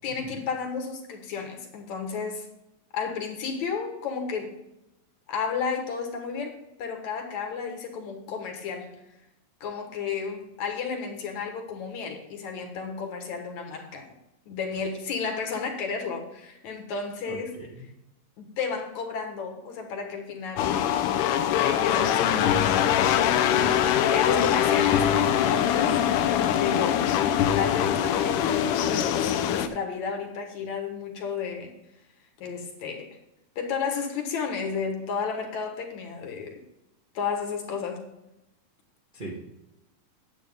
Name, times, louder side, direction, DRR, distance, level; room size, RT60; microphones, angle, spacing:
voice 1, 0.0-2.4 2.9-4.5 5.3-8.9 9.6-14.1 14.5-17.5 18.4-20.8 21.5-22.8 23.1-23.5 24.1-25.9 26.3-27.0 27.6-31.7 32.4-33.1 33.6-36.6 37.1-38.0, left 5 dB, 65° left, 3 dB, 2.7 m, -32 dB
voice 2, 17.3-17.8 23.5-23.8 24.7-24.9 39.1-39.4, right 2 dB, 25° right, -4 dB, 1.1 m, -37 dB
sound 1, 20.6-29.7, left 10 dB, 85° left, 2.2 m, -23 dB
11.0 x 8.5 x 3.7 m, 0.87 s
omnidirectional pair, 3.7 m